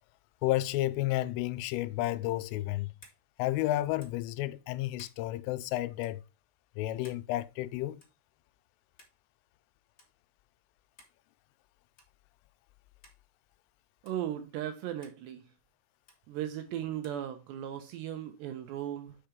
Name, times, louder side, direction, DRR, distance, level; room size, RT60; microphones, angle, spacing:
voice 1, 0.4-2.9 3.4-6.2 6.8-8.0, left 16 dB, 85° left, 3.1 m, -31 dB
sound 1, 2.0-2.2 3.0-3.2 4.0-4.3 4.9-5.2 6.0-6.2 7.0-7.3 8.0-8.2 9.0-9.2 10.0-10.1 11.0-11.2 12.0-12.2 13.0-13.2 14.0-14.2 15.0-15.2 16.1-16.2 17.0-17.2, left 2 dB, 40° left, 0.9 m, -58 dB
voice 2, 14.0-15.4 16.3-19.2, right 11 dB, 75° right, 2.7 m, -37 dB
6.0 x 5.7 x 5.1 m
omnidirectional pair, 5.7 m